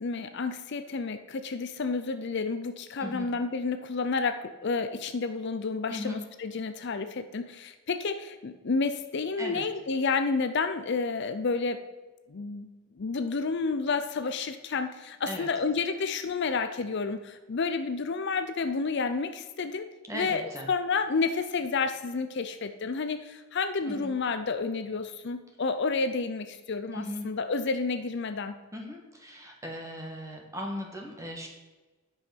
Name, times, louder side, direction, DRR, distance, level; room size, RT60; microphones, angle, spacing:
voice 1, 0.0-11.8 12.3-12.7 13.0-28.5, left 4 dB, 55° left, 9 dB, 0.5 m, -30 dB
voice 2, 5.9-6.2 9.4-9.6 15.3-15.5 20.1-20.7 23.9-24.1 26.9-27.2 28.7-31.5, left 1 dB, 15° right, 1 dB, 1.5 m, -38 dB
9.8 x 5.5 x 5.8 m, 1.2 s
head